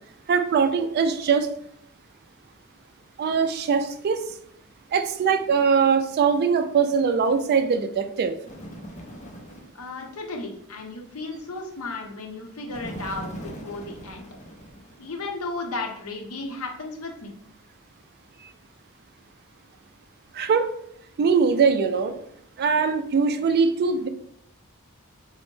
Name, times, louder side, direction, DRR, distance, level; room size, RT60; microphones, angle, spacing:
voice 1, 0.3-1.5 3.2-4.2 4.9-8.3 20.3-20.7 21.2-22.1 22.6-24.1, right 5 dB, 45° right, 8 dB, 0.3 m, -21 dB
Bird, 8.4-9.8 12.7-15.2, equal, 35° left, 0.6 m, -40 dB
voice 2, 9.7-14.3 15.0-17.3, left 3 dB, 75° left, 2 dB, 0.7 m, -34 dB
4.2 x 2.0 x 3.1 m, 0.69 s
head